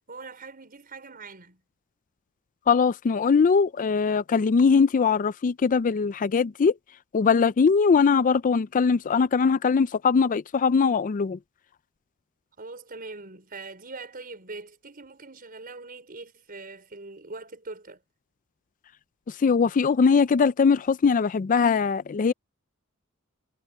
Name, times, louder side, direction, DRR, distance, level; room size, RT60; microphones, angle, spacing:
voice 1, 0.1-1.6 12.6-18.0, right 3 dB, 45° right, 4.9 m, -42 dB
voice 2, 2.7-6.7 7.1-11.4 19.4-22.3, left 5 dB, 40° left, 0.4 m, -21 dB
head